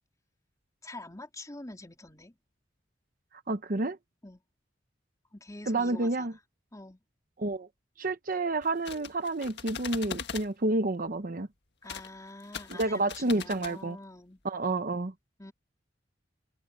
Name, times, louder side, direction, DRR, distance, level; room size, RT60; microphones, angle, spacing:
voice 1, 0.8-2.4 4.2-4.4 5.3-6.4 6.7-7.0 11.8-14.4 15.4-15.5, left 2 dB, 20° left, 3.5 m, -46 dB
voice 2, 3.5-4.0 5.7-6.3 7.4-7.7 8.0-11.5 12.8-14.0 14.4-15.1, right 2 dB, 50° right, 1.0 m, -29 dB
sound 1, 8.6-10.5 11.8-12.1 12.4-13.8, left 6 dB, 65° left, 1.7 m, -40 dB
head